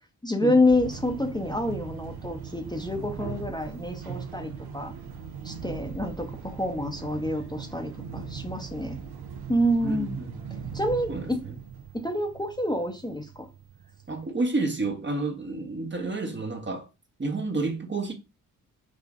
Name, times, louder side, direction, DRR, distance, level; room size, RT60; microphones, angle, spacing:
voice 1, 0.2-4.9 5.4-9.0 9.5-10.2 10.7-11.1 11.9-13.5, left 1 dB, 10° left, 0.8 m, -27 dB
sound 1, 0.6-14.3, right 6 dB, 65° right, 0.8 m, -40 dB
voice 2, 9.8-10.4 11.1-11.5 14.1-16.9 17.2-18.1, right 3 dB, 25° right, 0.9 m, -30 dB
4.8 x 2.5 x 2.5 m
supercardioid pair, 45°, 42 cm